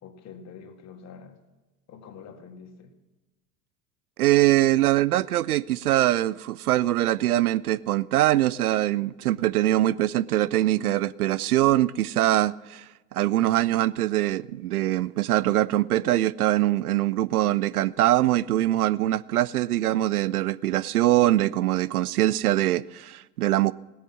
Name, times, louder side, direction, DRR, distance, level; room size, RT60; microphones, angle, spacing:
voice 1, 0.0-1.4 1.9-2.9, left 6 dB, 35° left, 6 dB, 1.9 m, -45 dB
voice 2, 4.2-23.7, right 14 dB, 75° right, 19 dB, 0.5 m, -23 dB
17.0 x 9.9 x 6.0 m, 1.1 s
figure-of-eight pair, 80°, 46 cm